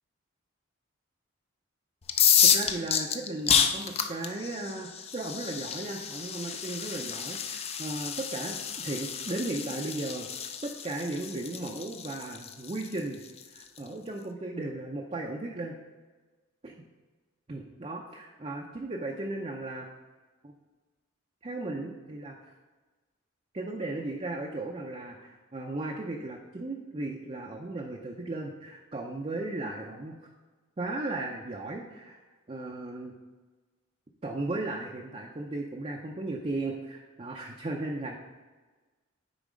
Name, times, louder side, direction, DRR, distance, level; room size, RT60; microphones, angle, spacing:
sound 1, 2.0-13.8, left 8 dB, 30° left, 0.4 m, -29 dB
voice 1, 2.4-10.3 10.6-13.2 13.5-15.8 16.6-16.8 17.5-19.9 20.4-20.5 21.4-22.5 23.5-30.1 30.8-32.2 32.5-33.1 34.2-38.2, right 2 dB, 30° right, 0 dB, 0.5 m, -36 dB
9.0 x 4.2 x 4.9 m, 1.3 s
head